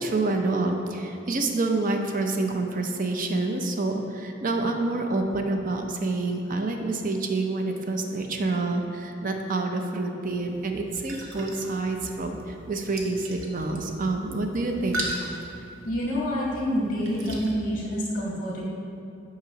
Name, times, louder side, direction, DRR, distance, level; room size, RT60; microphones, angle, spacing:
voice 1, 0.0-15.1, right 2 dB, 45° right, 4 dB, 0.6 m, -27 dB
sound 1, 10.2-17.5, right 1 dB, 85° right, 0.9 m, -38 dB
voice 2, 15.8-18.6, equal, 45° left, -4 dB, 1.6 m, -27 dB
8.6 x 3.0 x 5.8 m, 2.7 s
head